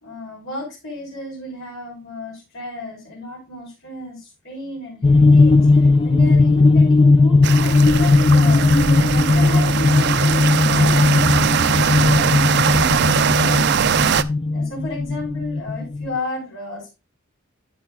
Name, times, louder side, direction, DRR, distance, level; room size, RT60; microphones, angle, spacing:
voice 1, 0.0-8.7 9.1-13.8 14.5-16.9, left 2 dB, 80° left, -5 dB, 4.3 m, -33 dB
sound 1, 5.0-16.2, left 3 dB, 25° left, 0.4 m, -16 dB
sound 2, 7.4-14.2, right 7 dB, 55° right, 0.5 m, -20 dB
10.5 x 9.5 x 2.4 m, 0.27 s
head